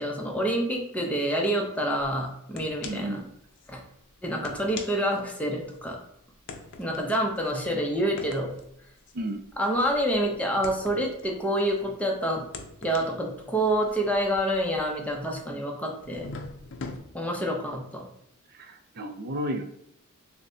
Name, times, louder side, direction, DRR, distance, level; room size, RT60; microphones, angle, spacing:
voice 1, 0.0-3.2 3.7-3.8 4.2-6.0 6.8-8.5 9.6-12.5 12.8-16.3 17.1-18.1, equal, 5° left, 0 dB, 0.7 m, -27 dB
sound 1, 2.0-2.1 2.6-3.2 3.6-3.7 4.3-5.9 6.5-12.0 12.4-15.5 16.0-17.0, left 3 dB, 60° left, 0.5 m, -43 dB
voice 2, 2.8-3.2 9.1-9.4 18.6-19.6, right 1 dB, 45° right, 6 dB, 0.5 m, -32 dB
6.5 x 2.2 x 2.7 m, 0.76 s
head